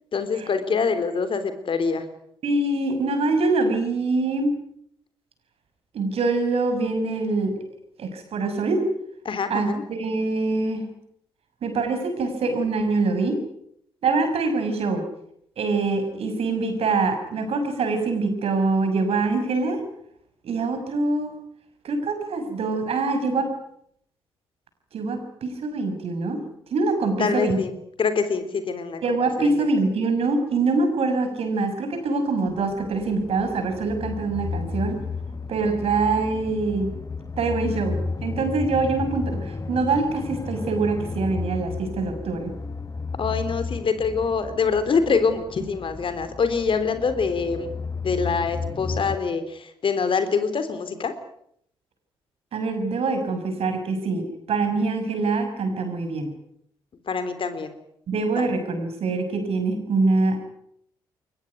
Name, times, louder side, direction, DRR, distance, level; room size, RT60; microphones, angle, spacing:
voice 1, 0.1-2.0 9.3-9.8 27.2-27.7 28.0-29.0 29.4-29.6 43.2-47.7 48.0-51.1 57.1-57.8 58.4-58.5, left 5 dB, 45° left, 10 dB, 3.6 m, -25 dB
voice 2, 2.4-4.5 5.9-7.6 8.0-8.9 9.5-9.7 10.0-10.8 11.6-13.4 14.0-15.0 15.6-19.8 20.4-21.3 21.8-23.5 24.9-26.4 26.7-27.6 29.0-35.0 35.5-36.9 37.4-42.5 52.5-56.3 58.1-60.5, right 3 dB, 60° right, 7 dB, 6.1 m, -24 dB
sound 1, 32.5-49.2, left 4 dB, 30° left, 1.8 m, -33 dB
22.5 x 20.0 x 9.5 m, 0.71 s
hypercardioid pair, 40°, 12 cm